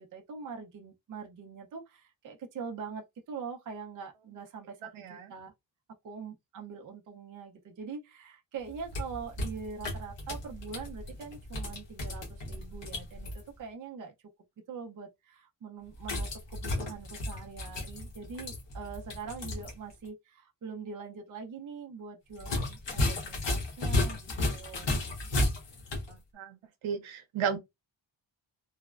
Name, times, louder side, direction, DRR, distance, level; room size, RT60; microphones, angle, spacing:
voice 1, 0.0-5.5 6.0-14.1 14.7-24.9, right 5 dB, 45° right, 0.5 m, -43 dB
voice 2, 4.8-5.3 25.2-25.3 26.1-26.6 26.8-27.6, right 7 dB, 85° right, 0.7 m, -34 dB
sound 1, 8.7-13.4 16.0-19.7 20.0-20.1 22.4-26.1, left 2 dB, 65° left, 1.0 m, -33 dB
3.1 x 2.0 x 2.3 m
wide cardioid pair, 175°, 47 cm